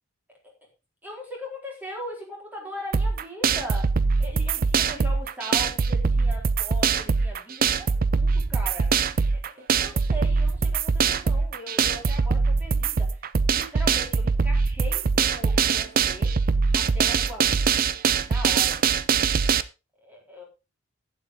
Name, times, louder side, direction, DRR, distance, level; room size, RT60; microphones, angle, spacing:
voice 1, 1.0-3.9 4.2-13.2 13.5-16.3 16.7-17.7 18.2-18.8 20.0-20.4, equal, 10° right, -1 dB, 4.3 m, -39 dB
sound 1, 2.9-19.6, right 5 dB, 45° right, 0.5 m, -23 dB
12.0 x 9.1 x 3.8 m, 0.28 s
head